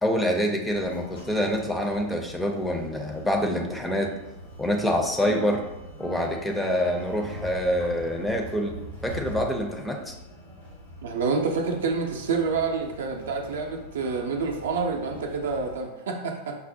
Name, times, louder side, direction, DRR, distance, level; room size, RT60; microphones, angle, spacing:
voice 1, 0.0-4.1 4.6-5.6 6.0-8.8 9.0-10.1, equal, 5° left, 2 dB, 0.4 m, -26 dB
sound 1, 0.7-15.8, equal, 80° left, 1.5 m, -42 dB
voice 2, 11.0-16.6, right 4 dB, 60° right, 2 dB, 0.5 m, -28 dB
5.4 x 2.0 x 2.6 m, 0.94 s
figure-of-eight pair, 90°, 0 cm